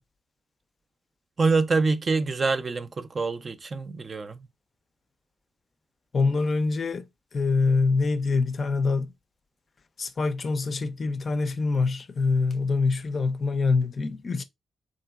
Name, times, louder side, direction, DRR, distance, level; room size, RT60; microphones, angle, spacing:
voice 1, 1.4-4.5, right 4 dB, 45° right, 0.3 m, -25 dB
voice 2, 6.1-7.1 7.3-9.1 10.0-14.4, left 4 dB, 50° left, 0.3 m, -25 dB
2.8 x 2.6 x 2.2 m
hypercardioid pair, 45°, 0 cm